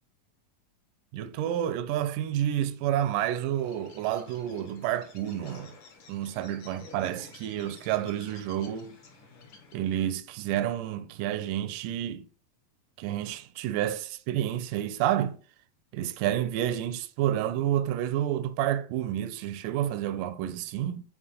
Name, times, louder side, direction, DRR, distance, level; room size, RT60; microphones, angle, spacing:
voice 1, 1.1-5.7 6.1-9.0 9.7-12.3 13.0-15.4 15.9-21.0, right 11 dB, 85° right, 2.2 m, -29 dB
Bird, 3.5-10.1, left 4 dB, 50° left, 1.8 m, -51 dB
8.8 x 4.5 x 3.8 m
omnidirectional pair, 3.8 m